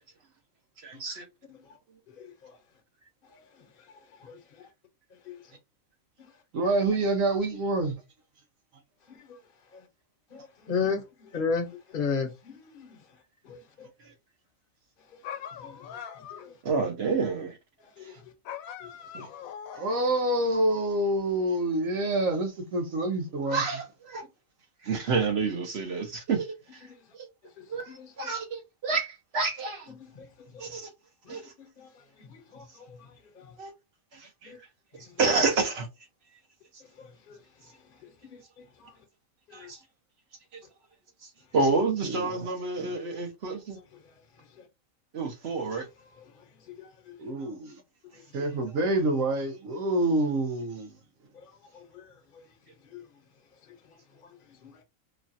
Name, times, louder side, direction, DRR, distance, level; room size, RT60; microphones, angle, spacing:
voice 1, 0.8-1.2 14.0-14.1 16.6-17.6 23.5-24.2 24.8-26.5 26.7-26.8 27.1-27.3 27.7-29.9 30.6-30.9 31.3-31.5 33.6-33.7 34.1-34.5 35.2-35.9 39.5-39.8 41.2-43.8 45.1-45.9, right 4 dB, 55° right, 0.9 m, -29 dB
voice 2, 2.1-2.6 3.2-4.7 5.1-5.6 6.2-6.4 9.1-9.4 9.7-9.9 10.3-11.0 11.3-13.2 13.4-13.9 15.0-15.2 15.5-16.5 17.8-18.3 18.8-19.5 26.8-27.1 27.4-28.1 29.9-30.8 31.2-33.6 34.4-34.6 34.9-35.2 36.9-39.0 39.5-39.7 43.7-44.7 45.6-47.2 48.1-48.5 51.3-52.5 52.8-53.3 53.6-54.8, left 5 dB, 45° left, 0.9 m, -39 dB
voice 3, 6.5-8.0 18.0-18.2 19.1-19.3 19.7-23.6 42.0-42.4 42.8-42.9 47.2-47.8 48.3-50.9, right 1 dB, 75° right, 1.1 m, -27 dB
sound 1, 15.2-16.6 18.4-20.2, left 8 dB, 85° left, 1.0 m, -41 dB
3.1 x 2.3 x 2.6 m
omnidirectional pair, 1.4 m